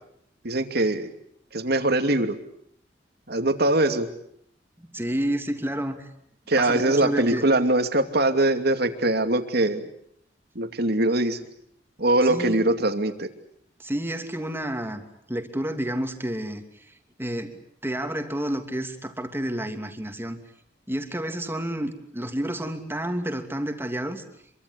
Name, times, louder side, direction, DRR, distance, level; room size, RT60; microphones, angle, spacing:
voice 1, 0.4-1.1 1.5-2.4 3.3-4.1 6.5-9.9 10.5-11.4 12.0-13.3, right 2 dB, 60° right, 8 dB, 2.7 m, -22 dB
voice 2, 4.8-6.1 6.6-7.4 12.2-12.6 13.8-15.0 15.3-17.6 17.8-20.4 20.9-24.2, right 1 dB, 15° right, 6 dB, 2.8 m, -30 dB
26.5 x 24.0 x 8.3 m, 0.70 s
head